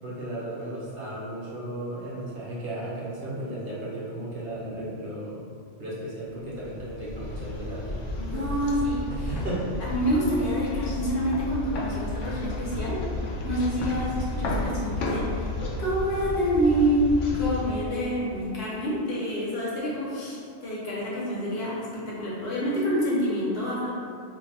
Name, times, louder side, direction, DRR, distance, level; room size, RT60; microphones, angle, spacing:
voice 1, 0.0-5.4 5.8-8.5 9.1-9.7, right 1 dB, 60° right, -7 dB, 0.9 m, -35 dB
sound 1, 6.5-18.5, left 2 dB, 85° left, 0.9 m, -32 dB
voice 2, 8.2-9.4 9.8-13.0 13.4-23.9, equal, 60° left, -7 dB, 1.0 m, -27 dB
2.6 x 2.1 x 4.0 m, 2.3 s
omnidirectional pair, 1.2 m